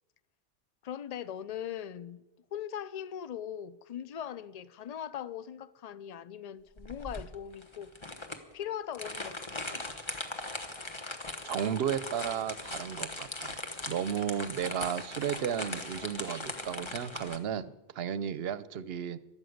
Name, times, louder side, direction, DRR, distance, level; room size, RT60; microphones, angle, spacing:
voice 1, 0.8-2.2 2.5-7.9 8.5-9.8, left 9 dB, 50° left, 0.5 m, -40 dB
sound 1, 6.8-17.4, left 2 dB, 25° left, 1.1 m, -39 dB
voice 2, 11.4-13.6 13.9-19.2, right 8 dB, 65° right, 0.8 m, -34 dB
13.0 x 11.5 x 7.9 m
omnidirectional pair, 1.2 m